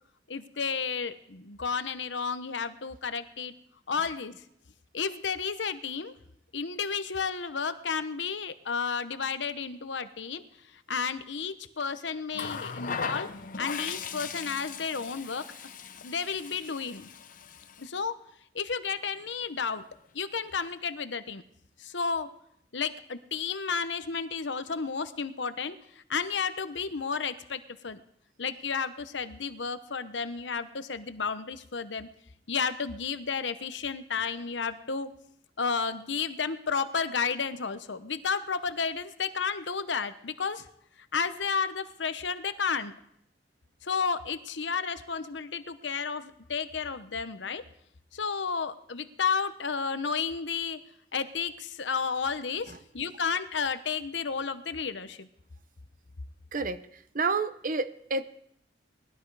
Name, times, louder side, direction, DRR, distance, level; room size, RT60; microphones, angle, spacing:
voice 1, 0.3-3.5 3.9-4.3 4.9-6.1 6.5-10.4 10.9-13.3 13.6-15.4 16.0-17.1 17.8-18.1 18.5-19.8 20.1-21.4 21.8-22.3 22.7-25.7 26.1-28.0 28.4-32.1 32.5-35.1 35.6-40.6 41.1-42.9 43.8-47.6 48.1-50.8 51.1-55.3, left 5 dB, 80° left, 12 dB, 1.0 m, -32 dB
Water tap faucet, 12.3-17.9 19.1-19.3, left 6 dB, 50° left, 0.8 m, -38 dB
voice 2, 56.5-58.2, right 4 dB, 50° right, 12 dB, 0.9 m, -30 dB
19.5 x 13.0 x 4.8 m, 0.73 s
head